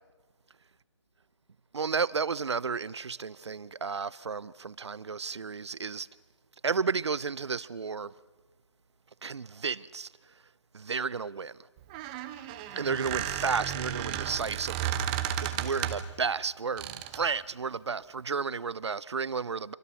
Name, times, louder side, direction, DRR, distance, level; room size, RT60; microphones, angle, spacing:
voice 1, 1.7-6.1 6.6-8.1 9.2-10.1 10.7-11.6 12.8-19.7, right 5 dB, 60° right, 0.8 m, -32 dB
Squeak, 11.8-16.2 16.8-17.3, right 11 dB, 15° right, 0.9 m, -33 dB
27.0 x 24.0 x 6.5 m
figure-of-eight pair, 150°, 16 cm